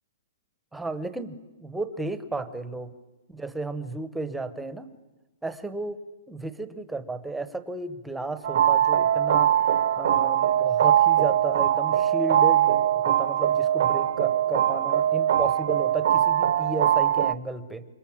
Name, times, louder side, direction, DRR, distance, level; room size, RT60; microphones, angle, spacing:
voice 1, 0.7-2.9 3.3-4.9 5.4-6.0 6.3-17.9, right 3 dB, 5° right, 11 dB, 1.0 m, -33 dB
sound 1, 8.4-17.3, right 11 dB, 60° right, 0.8 m, -22 dB
26.0 x 23.0 x 8.8 m, 1.1 s
hypercardioid pair, 165°, 0 cm